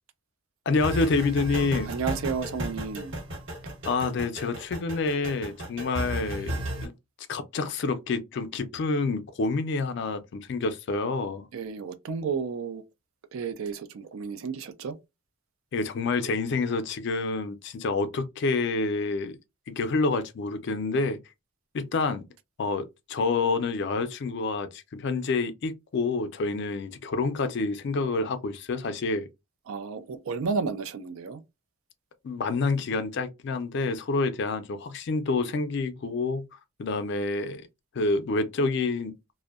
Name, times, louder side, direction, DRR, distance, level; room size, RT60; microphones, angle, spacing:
voice 1, 0.7-1.9 3.8-6.9 7.3-11.5 15.7-19.4 19.7-21.2 21.7-22.2 22.6-29.3 32.2-36.5 36.8-37.7 37.9-39.1, left 3 dB, 55° left, 0.4 m, -28 dB
sound 1, 0.7-6.9, right 1 dB, 60° right, 1.0 m, -34 dB
voice 2, 1.9-3.1 11.5-12.8 13.3-15.0 29.7-31.4, right 5 dB, 85° right, 0.4 m, -32 dB
2.6 x 2.1 x 2.3 m
head